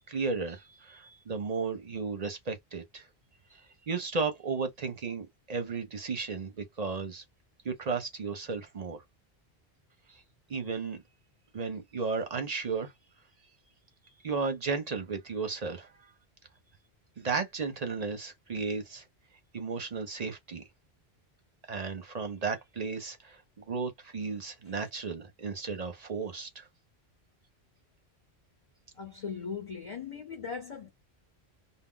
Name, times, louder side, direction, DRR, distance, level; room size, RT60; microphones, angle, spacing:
voice 1, 0.1-3.1 3.9-7.2 7.6-9.0 10.1-10.2 10.5-11.0 11.5-12.9 14.2-15.9 17.2-19.0 19.5-20.6 21.7-23.4 23.7-26.7, right 4 dB, 45° right, 0.6 m, -34 dB
voice 2, 29.0-30.9, left 6 dB, 35° left, 0.8 m, -39 dB
2.3 x 2.0 x 3.6 m
omnidirectional pair, 1.1 m